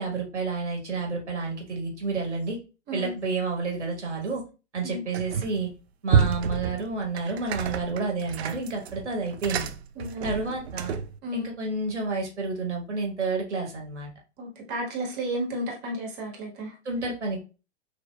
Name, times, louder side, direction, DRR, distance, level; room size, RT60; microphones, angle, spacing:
voice 1, 0.0-2.6 2.9-4.4 4.7-5.7 6.0-9.7 10.2-11.0 11.3-14.1 16.8-17.4, right 3 dB, 80° right, 1.4 m, -30 dB
sound 1, 5.1-5.7 6.1-11.2, right 7 dB, 65° right, 0.5 m, -29 dB
voice 2, 10.0-10.4 11.2-11.5 14.4-16.7, equal, 30° right, 1.4 m, -32 dB
5.9 x 2.6 x 2.2 m
figure-of-eight pair, 105°, 34 cm